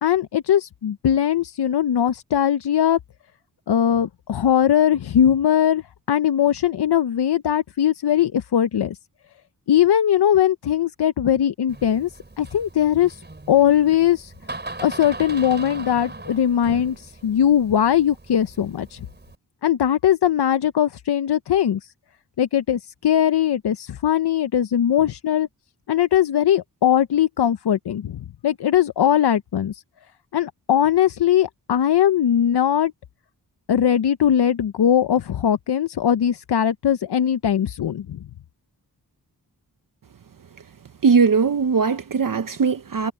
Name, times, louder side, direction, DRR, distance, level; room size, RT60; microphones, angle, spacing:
voice 1, 0.0-3.0 3.7-9.0 9.7-13.2 13.5-14.3 14.8-19.1 19.6-21.9 22.4-25.5 25.9-29.8 30.3-32.9 33.7-38.2, left 10 dB, 80° left, 0.7 m, -20 dB
Door, 11.7-19.4, right 2 dB, 25° right, 4.6 m, -39 dB
voice 2, 41.0-43.1, right 5 dB, 55° right, 0.8 m, -19 dB
wide cardioid pair, 110°, 40 cm